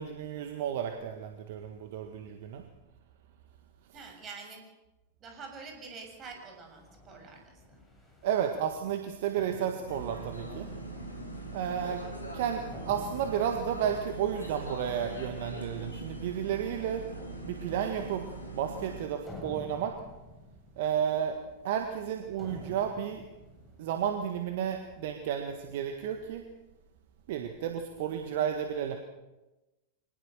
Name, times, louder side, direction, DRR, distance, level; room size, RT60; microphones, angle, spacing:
voice 1, 0.0-2.6 8.2-10.7 11.5-12.0 12.3-17.0 17.4-18.2 18.5-19.9 20.8-21.4 21.6-23.2 23.8-26.4 27.3-29.0, right 9 dB, 55° right, 6 dB, 1.7 m, -32 dB
voice 2, 3.9-4.6 5.2-7.9 11.6-12.0, right 4 dB, 30° right, 4 dB, 6.6 m, -47 dB
sound 1, 5.3-25.2, left 2 dB, 10° left, 7.9 m, -52 dB
sound 2, 9.9-19.0, right 2 dB, 85° left, 3.8 m, -41 dB
24.5 x 19.0 x 6.8 m, 1.1 s
figure-of-eight pair, 90°, 0 cm